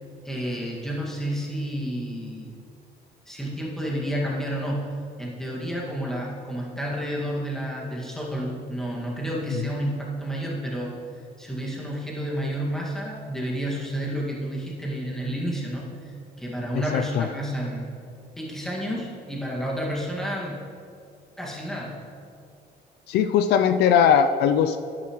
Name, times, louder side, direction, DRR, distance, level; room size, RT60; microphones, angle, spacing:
voice 1, 0.2-2.6 3.3-11.0 11.4-17.9 18.4-20.6 21.4-22.0, equal, 5° left, -4 dB, 1.9 m, -30 dB
voice 2, 16.9-17.3 23.1-24.8, left 8 dB, 75° left, 9 dB, 0.4 m, -20 dB
10.5 x 9.6 x 3.1 m, 2.5 s
cardioid pair, 110°, 17 cm